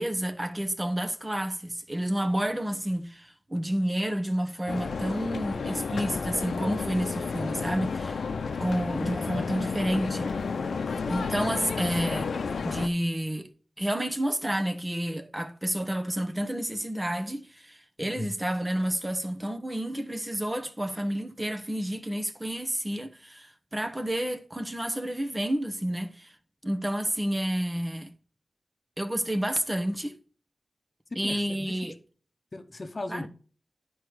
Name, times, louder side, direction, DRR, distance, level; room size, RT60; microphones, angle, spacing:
voice 1, 0.0-8.2 8.6-10.3 11.1-12.3 12.6-13.5 13.8-26.3 26.6-28.1 29.0-30.2 31.2-31.9 33.1-33.3, right 1 dB, 20° right, 0.9 m, -30 dB
sound 1, 4.7-12.9, left 5 dB, 90° left, 0.7 m, -31 dB
voice 2, 18.0-18.3 31.1-31.8 32.5-33.3, left 2 dB, 40° left, 0.9 m, -37 dB
10.0 x 4.7 x 4.8 m
wide cardioid pair, 65°, 0 cm